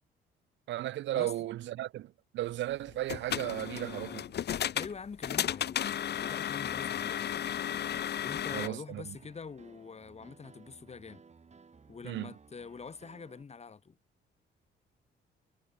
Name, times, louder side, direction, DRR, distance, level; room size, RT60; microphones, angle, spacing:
voice 1, 0.7-4.2 8.5-9.2 12.0-12.3, right 14 dB, 70° right, 0.5 m, -35 dB
sound 1, 2.9-8.7, left 10 dB, 55° left, 1.1 m, -34 dB
voice 2, 4.7-7.4 8.2-11.2 11.9-14.0, left 5 dB, 35° left, 1.9 m, -45 dB
Piano, 6.6-13.4, right 5 dB, 35° right, 3.8 m, -58 dB
cardioid pair, 90°, 20 cm